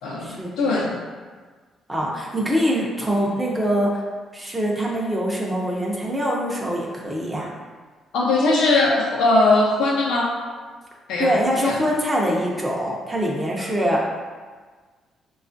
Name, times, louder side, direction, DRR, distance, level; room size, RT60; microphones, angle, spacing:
voice 1, 0.0-1.0 8.1-10.4 11.1-11.3 11.6-11.8, left 2 dB, 90° left, -3 dB, 0.6 m, -20 dB
voice 2, 1.9-4.0 4.3-7.5 11.2-14.1, equal, 10° right, -4 dB, 0.6 m, -23 dB
4.1 x 2.3 x 2.6 m, 1.4 s
cardioid pair, 90°, 0 cm